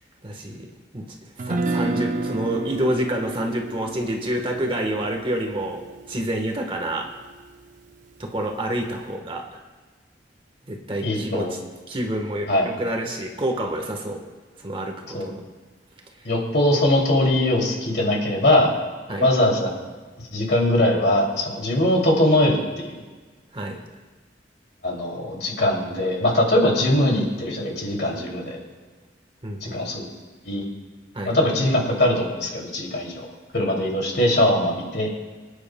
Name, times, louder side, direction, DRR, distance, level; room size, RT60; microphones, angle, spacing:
voice 1, 0.2-1.1 1.4-5.8 6.1-7.1 8.2-9.6 10.7-11.6 11.9-14.2 14.6-15.4 16.1-16.3 19.1-19.3 23.5-23.8 29.4-29.9 31.1-31.4, right 1 dB, 30° right, 2 dB, 1.3 m, -28 dB
Guitar, 1.4-7.5, right 2 dB, 45° right, 0.6 m, -31 dB
voice 2, 11.0-11.5 12.5-12.7 15.1-15.3 16.2-18.7 19.2-19.7 20.3-23.0 24.8-28.6 29.6-30.0 30.4-30.6 31.3-33.3 33.5-35.1, left 1 dB, 65° left, -1 dB, 2.7 m, -21 dB
25.5 x 9.6 x 2.2 m, 1.4 s
head